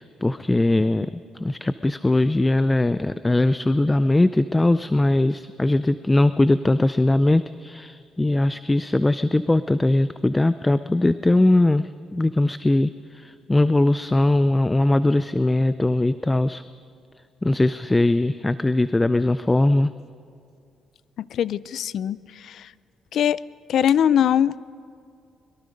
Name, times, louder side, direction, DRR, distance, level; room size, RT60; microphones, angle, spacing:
voice 1, 0.0-16.6 17.4-19.9, left 2 dB, 15° left, 13 dB, 0.5 m, -20 dB
voice 2, 21.3-22.7 23.1-23.4 23.7-24.6, left 9 dB, 70° left, 19 dB, 0.5 m, -21 dB
24.0 x 22.5 x 5.3 m, 2.3 s
cardioid pair, 90°, 0 cm